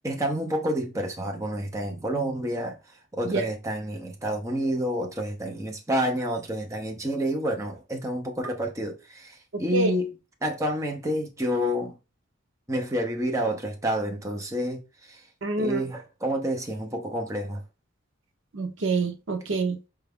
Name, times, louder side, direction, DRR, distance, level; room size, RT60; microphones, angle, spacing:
voice 1, 0.0-2.8 3.2-10.1 10.4-12.0 12.7-14.8 15.1-15.2 15.6-17.6, equal, 15° right, 0.7 m, -29 dB
voice 2, 9.5-9.9 15.4-15.8 18.5-19.8, right 3 dB, 70° right, 0.6 m, -27 dB
4.8 x 2.3 x 3.4 m
head